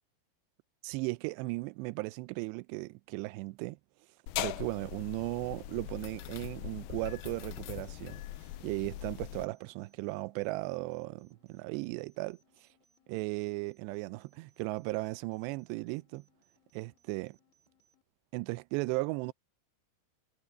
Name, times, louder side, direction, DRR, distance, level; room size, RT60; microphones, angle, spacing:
voice 1, 0.8-3.8 4.4-8.2 8.6-12.4 13.1-16.3 16.7-17.4 18.3-19.3, right 23 dB, 85° right, 2.7 m, -36 dB
sound 1, 4.3-9.5, left 14 dB, 80° left, 2.1 m, -41 dB
sound 2, 7.0-18.0, left 1 dB, 15° left, 6.5 m, -73 dB
omnidirectional pair, 4.9 m